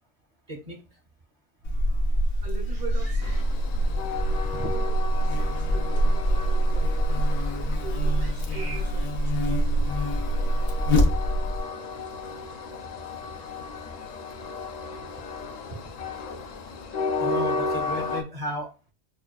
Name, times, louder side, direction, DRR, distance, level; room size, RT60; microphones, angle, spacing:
voice 1, 0.5-0.8 4.4-4.7 9.7-9.8 17.2-18.7, equal, 40° right, 0 dB, 0.7 m, -34 dB
Buzz, 1.6-11.6, equal, 80° left, 1.0 m, -25 dB
voice 2, 2.4-3.4 4.7-9.3, right 3 dB, 80° right, 0 dB, 1.4 m, -42 dB
Train, 3.2-18.2, left 4 dB, 55° left, 0.5 m, -34 dB
6.3 x 2.3 x 2.3 m, 0.31 s
omnidirectional pair, 1.1 m